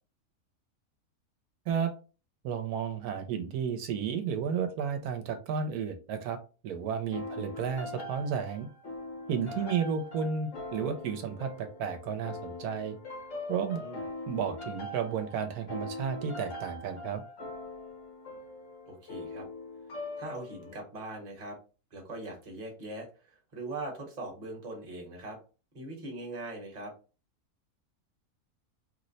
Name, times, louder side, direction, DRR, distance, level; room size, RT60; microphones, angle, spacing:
voice 1, 2.4-6.4 6.6-8.7 9.3-13.0 13.5-13.8 14.3-17.2, right 7 dB, 85° right, 7 dB, 1.1 m, -32 dB
sound 1, 7.1-20.8, left 2 dB, 60° left, 1.2 m, -42 dB
voice 2, 18.9-19.5 20.2-21.6 21.9-25.4 25.7-26.9, right 2 dB, 30° right, 0 dB, 1.0 m, -41 dB
2.9 x 2.1 x 3.9 m, 0.34 s
omnidirectional pair, 1.6 m